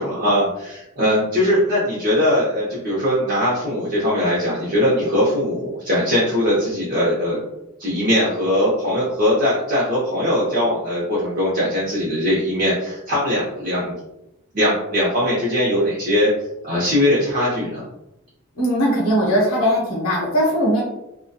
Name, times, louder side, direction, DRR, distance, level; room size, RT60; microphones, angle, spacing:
voice 1, 0.0-7.4 7.8-13.9 14.5-16.3 16.6-17.8, left 1 dB, 40° right, -8 dB, 0.6 m, -20 dB
voice 2, 18.6-20.8, equal, 85° left, -4 dB, 0.7 m, -19 dB
2.6 x 2.2 x 2.2 m, 0.88 s
head